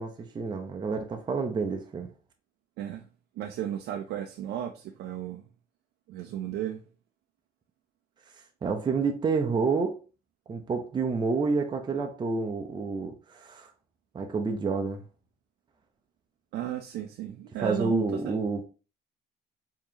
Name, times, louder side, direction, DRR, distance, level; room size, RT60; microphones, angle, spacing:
voice 1, 0.0-2.1 8.6-10.0 10.5-13.7 14.1-15.0 17.6-18.6, right 4 dB, 25° right, 0.6 m, -29 dB
voice 2, 3.4-5.4 6.1-6.8 16.5-18.4, right 11 dB, 75° right, 0.5 m, -34 dB
4.7 x 2.9 x 2.8 m
cardioid pair, 110°, 17 cm